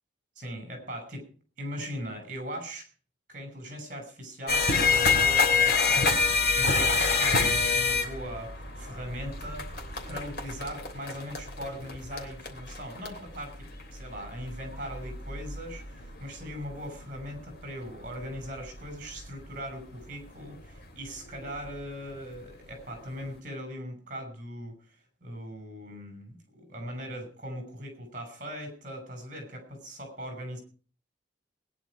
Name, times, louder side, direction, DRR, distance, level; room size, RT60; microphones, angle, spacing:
voice 1, 0.4-1.3 1.6-2.9 3.3-6.1 6.5-9.7 10.1-25.0 25.2-30.6, equal, 45° right, 6 dB, 6.2 m, -40 dB
sound 1, 4.5-19.8 20.6-20.8 21.1-21.8 22.4-22.5 22.9-23.0, left 4 dB, 55° left, 3.1 m, -27 dB
20.5 x 10.5 x 4.9 m, 0.41 s
head